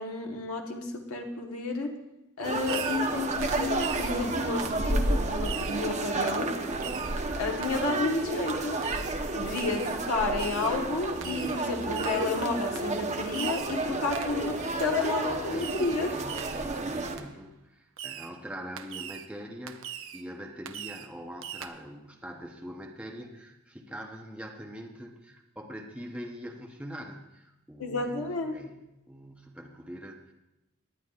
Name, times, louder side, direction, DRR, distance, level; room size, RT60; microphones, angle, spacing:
voice 1, 0.0-1.9 2.4-6.5 7.3-8.8 9.3-16.2 27.8-28.6, left 3 dB, 80° left, 2 dB, 1.3 m, -31 dB
sound 1, 2.4-17.2, right 2 dB, 35° right, 0.9 m, -31 dB
Fireworks, 2.7-3.1 3.4-4.2 4.6-4.8 5.4-5.9 6.3-6.5 6.8-7.2 7.6-7.7 8.8-9.2 9.5-9.9 10.4-10.7 11.2-11.6 11.9-12.3 12.8-12.9 13.3-13.8 14.1-14.4 15.6-16.0 16.3-16.7 17.2-17.3 18.0-18.3 18.8-19.3 19.7-20.2 20.7-21.1 21.4-21.7, right 10 dB, 65° right, 0.6 m, -40 dB
voice 2, 16.1-28.8 29.1-30.3, equal, 5° right, 1 dB, 0.8 m, -43 dB
18.5 x 10.0 x 2.4 m, 0.94 s
head